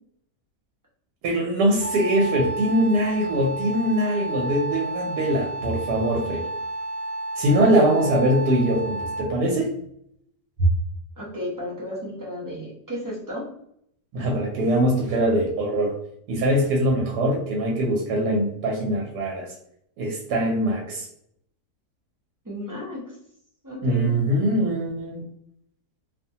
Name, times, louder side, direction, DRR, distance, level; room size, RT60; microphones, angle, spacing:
voice 1, 1.2-6.4 7.4-9.8 14.1-15.9 16.3-19.5 20.0-21.1 23.8-25.2, right 1 dB, 85° right, 0 dB, 1.3 m, -22 dB
Wind instrument woodwind instrument, 1.8-9.4, right 1 dB, 65° left, 1.1 m, -31 dB
voice 2, 7.6-8.0 11.2-13.5 22.4-23.0 23.6-24.1, equal, 20° right, -6 dB, 0.5 m, -33 dB
2.9 x 2.1 x 2.7 m, 0.71 s
omnidirectional pair, 1.7 m